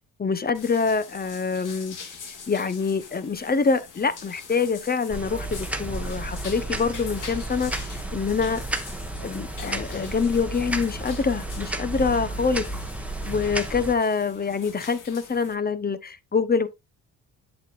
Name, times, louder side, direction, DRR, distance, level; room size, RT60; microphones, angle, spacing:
voice 1, 0.2-2.1 2.5-8.6 9.2-12.7 13.3-16.7, left 5 dB, 25° left, 0.9 m, -25 dB
sound 1, 0.5-15.5, left 5 dB, 55° left, 2.1 m, -44 dB
sound 2, 5.1-14.0, right 2 dB, 5° right, 1.2 m, -32 dB
8.0 x 7.1 x 2.5 m
cardioid pair, 80°, 36 cm